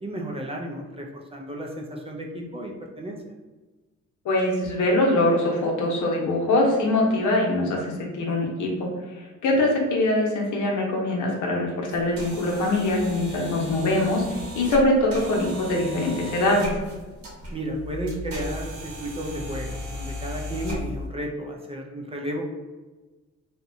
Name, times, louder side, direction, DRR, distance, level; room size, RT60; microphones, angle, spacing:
voice 1, 0.0-3.2 17.5-22.4, right 1 dB, 20° right, 0 dB, 0.4 m, -33 dB
voice 2, 4.2-16.8, left 1 dB, 75° left, -1 dB, 0.8 m, -23 dB
sound 1, 11.9-21.1, left 1 dB, 65° right, 1.1 m, -37 dB
2.8 x 2.1 x 2.6 m, 1.2 s
cardioid pair, 90°, 30 cm